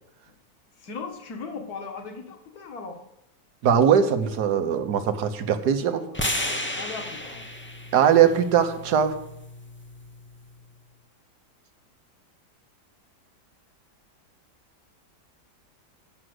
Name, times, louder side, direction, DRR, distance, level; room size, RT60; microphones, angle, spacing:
voice 1, 0.8-3.0 5.9-6.2 6.8-7.5, left 4 dB, 60° left, 4 dB, 2.0 m, -38 dB
voice 2, 3.6-6.0 7.9-9.2, right 8 dB, 70° right, 8 dB, 1.5 m, -20 dB
sound 1, 6.1-10.3, left 1 dB, 15° left, 0.4 m, -33 dB
9.9 x 6.3 x 7.9 m, 0.84 s
omnidirectional pair, 1.8 m